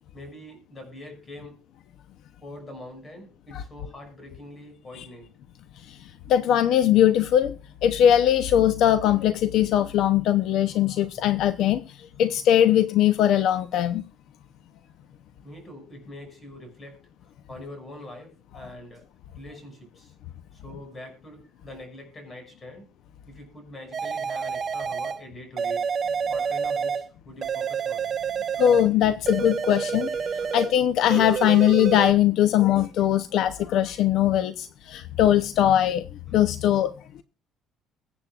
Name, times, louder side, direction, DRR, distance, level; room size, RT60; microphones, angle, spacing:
voice 1, 0.1-1.6 2.4-5.3 15.4-17.0 17.5-19.0 19.3-20.1 20.5-22.9 23.3-25.9 26.3-28.1 30.3-30.5, left 1 dB, 20° left, 6.1 m, -44 dB
voice 2, 5.9-14.0 28.6-36.1 36.3-36.9, left 11 dB, 60° left, 0.7 m, -21 dB
sound 1, 23.9-25.2 25.6-27.1 27.4-28.9 29.2-30.8 31.1-32.1, right 6 dB, 30° right, 0.8 m, -28 dB
22.5 x 8.5 x 2.4 m
cardioid pair, 160°, 0 cm